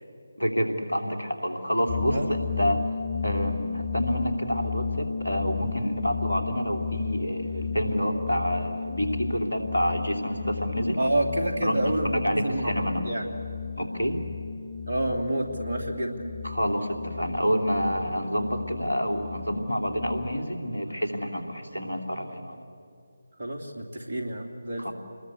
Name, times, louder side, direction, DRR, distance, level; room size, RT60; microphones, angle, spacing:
voice 1, 0.4-2.8 3.2-11.0 11.6-13.0 13.8-14.2 16.4-22.6 24.8-24.9, equal, 70° left, 4 dB, 3.1 m, -28 dB
sound 1, 1.9-20.6, left 5 dB, 30° left, 0.6 m, -34 dB
voice 2, 11.0-13.3 14.9-16.3 23.4-24.9, right 1 dB, 45° right, 1 dB, 2.9 m, -29 dB
28.0 x 21.0 x 8.4 m, 2.6 s
figure-of-eight pair, 155°, 0 cm